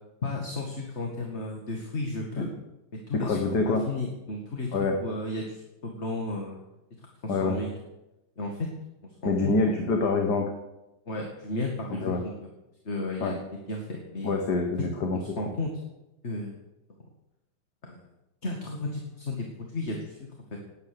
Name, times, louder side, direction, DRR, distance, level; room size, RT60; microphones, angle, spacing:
voice 1, 0.2-2.5 3.1-4.7 5.0-6.6 7.0-7.7 8.4-8.7 9.2-9.9 11.1-12.3 12.8-14.4 15.1-15.7 16.2-16.5 17.8-18.1 18.4-20.2, left 2 dB, 35° left, 1 dB, 2.2 m, -34 dB
voice 2, 3.1-3.8 4.7-5.0 7.3-7.6 9.3-10.5 12.0-12.2 13.2-13.4 14.2-15.2, left 3 dB, 65° left, 4 dB, 2.0 m, -26 dB
19.0 x 9.4 x 6.8 m, 0.94 s
omnidirectional pair, 2.0 m